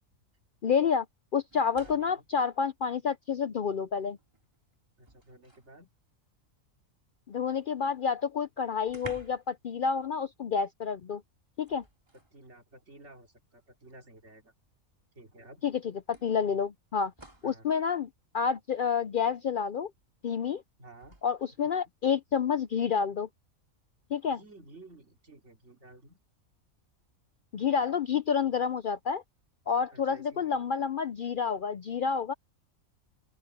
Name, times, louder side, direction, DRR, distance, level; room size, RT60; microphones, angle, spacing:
voice 1, 0.6-1.1 1.3-4.2 7.3-11.2 11.6-11.8 15.6-15.7 16.1-17.1 17.4-18.1 18.3-19.9 20.2-20.6 21.2-23.3 24.1-24.4 27.5-29.2 29.7-32.3, left 6 dB, 60° left, 0.5 m, -29 dB
sound 1, 1.5-2.2 3.6-3.7 4.2-5.8 7.8-7.9 8.2-8.3 8.8-9.6 9.9-10.1 11.6-12.4 13.5-13.6 15.1-15.2 16.1-17.6 20.9-21.2, right 2 dB, 20° right, 2.6 m, -51 dB
voice 2, 1.8-2.2 5.0-5.9 12.3-14.5 15.1-15.6 17.4-17.7 20.8-21.2 21.6-21.7 24.2-26.2 29.9-30.6, right 2 dB, 55° right, 3.2 m, -53 dB
open air
omnidirectional pair, 1.4 m